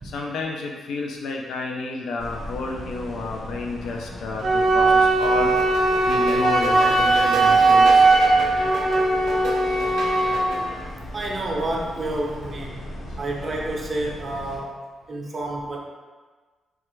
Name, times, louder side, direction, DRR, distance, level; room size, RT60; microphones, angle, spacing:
voice 1, 0.1-5.6 6.0-8.1, left 3 dB, 80° left, 0 dB, 0.4 m, -31 dB
sound 1, 2.2-14.6, equal, 65° left, 0.8 m, -38 dB
Wind instrument woodwind instrument, 4.4-10.5, right 3 dB, 55° right, 0.8 m, -18 dB
sound 2, 5.2-10.9, right 2 dB, 90° right, 0.5 m, -32 dB
voice 2, 11.1-12.9 13.2-14.8 15.1-15.8, right 1 dB, 30° right, -1 dB, 0.5 m, -29 dB
3.2 x 2.3 x 3.0 m, 1.4 s
cardioid pair, 145°, 0 cm